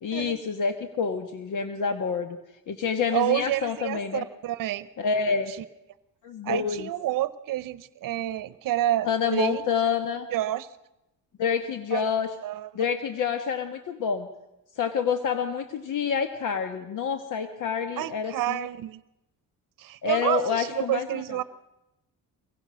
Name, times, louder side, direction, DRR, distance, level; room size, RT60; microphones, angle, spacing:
voice 1, 0.0-2.4 2.7-4.2 5.0-5.5 6.2-6.9 9.0-10.3 11.4-12.3 12.7-14.3 14.8-18.6 20.0-21.4, left 6 dB, 60° left, 8 dB, 1.4 m, -28 dB
voice 2, 3.1-4.9 5.5-5.6 6.4-9.6 10.3-10.7 11.9-12.1 12.4-12.7 18.0-19.0 19.8-21.4, right 13 dB, 65° right, 16 dB, 0.9 m, -29 dB
24.0 x 22.5 x 6.3 m, 0.94 s
cardioid pair, 145°, 35 cm